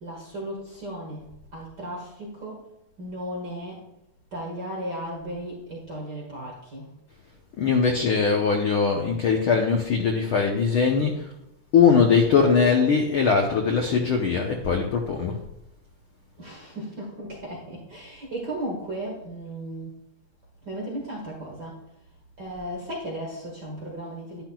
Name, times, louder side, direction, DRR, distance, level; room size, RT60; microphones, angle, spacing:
voice 1, 0.0-1.2 1.5-2.7 3.0-3.8 4.3-6.9 16.4-19.9 20.6-21.8 22.4-24.4, right 1 dB, 40° right, -3 dB, 1.7 m, -35 dB
voice 2, 7.6-11.3 11.7-15.4, left 5 dB, 85° left, 2 dB, 1.1 m, -21 dB
11.5 x 10.5 x 2.3 m, 0.86 s
omnidirectional pair, 3.6 m